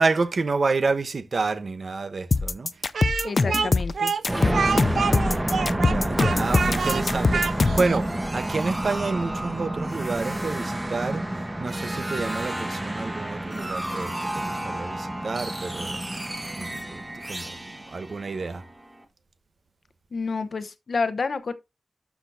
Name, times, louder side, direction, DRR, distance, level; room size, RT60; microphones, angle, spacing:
voice 1, 0.0-2.7 5.9-16.0 16.6-18.6, right 4 dB, 55° right, 1.0 m, -29 dB
sound 1, 2.3-7.9, left 3 dB, 45° left, 0.4 m, -23 dB
Speech, 2.9-8.0, right 5 dB, 90° right, 0.6 m, -27 dB
voice 2, 3.2-4.1 4.7-5.0 20.1-21.5, left 4 dB, 60° left, 0.9 m, -29 dB
sound 2, 4.3-19.0, right 1 dB, 20° right, 1.5 m, -29 dB
12.5 x 6.1 x 2.7 m
wide cardioid pair, 120°, 0 cm